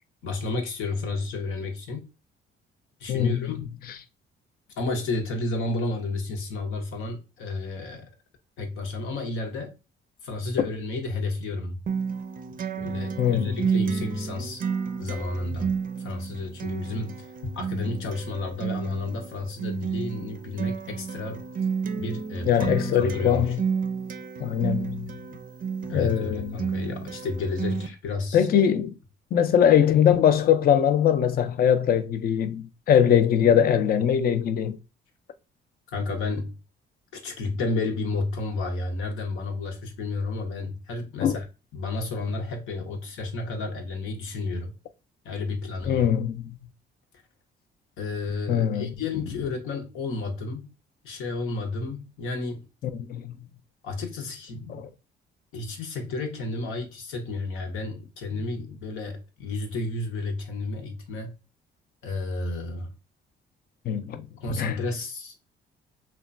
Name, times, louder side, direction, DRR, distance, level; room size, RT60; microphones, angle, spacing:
voice 1, 0.2-2.1 3.0-3.7 4.8-8.1 8.6-9.7 10.2-11.8 12.8-14.6 15.0-15.7 16.0-21.4 22.0-22.7 23.0-23.5 25.9-28.5 35.9-36.6 37.1-41.4 41.7-44.7 45.2-46.1 48.0-50.7 51.0-52.7 53.8-54.9 55.5-61.3 62.0-62.9 64.4-65.4, left 3 dB, 90° left, 0.8 m, -31 dB
voice 2, 3.1-3.5 13.2-13.7 22.4-23.6 24.4-25.2 25.9-26.6 28.3-28.9 29.3-34.8 41.2-41.4 45.9-46.6 48.5-48.9 53.1-53.4 54.7-54.9 63.9-64.2 64.5-64.8, left 9 dB, 50° left, 0.4 m, -22 dB
Acoustic guitar, 11.9-27.9, right 6 dB, 45° right, 0.4 m, -31 dB
3.0 x 2.2 x 2.4 m
cardioid pair, 90°, 20 cm